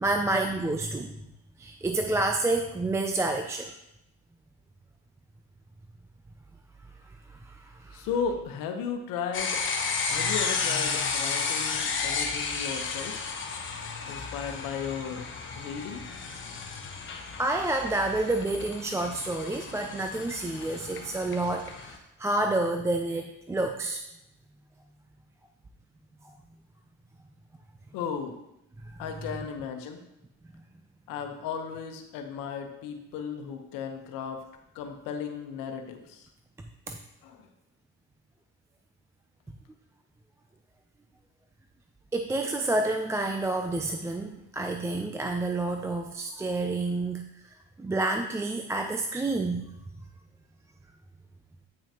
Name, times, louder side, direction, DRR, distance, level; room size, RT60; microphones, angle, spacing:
voice 1, 0.0-1.1 1.6-3.7 7.6-8.0 17.4-24.0 28.9-29.0 36.9-37.0 42.1-47.2 47.8-49.6, right 2 dB, 10° right, 4 dB, 0.3 m, -29 dB
voice 2, 7.9-9.6 10.1-13.2 14.1-15.3 15.5-16.0 27.9-28.4 29.0-30.0 31.1-34.4 34.7-36.3 37.2-37.4, left 6 dB, 80° left, 5 dB, 1.1 m, -35 dB
sound 1, 9.3-22.0, left 5 dB, 35° left, 1.0 m, -33 dB
8.8 x 5.8 x 2.9 m, 0.83 s
cardioid pair, 115°, 32 cm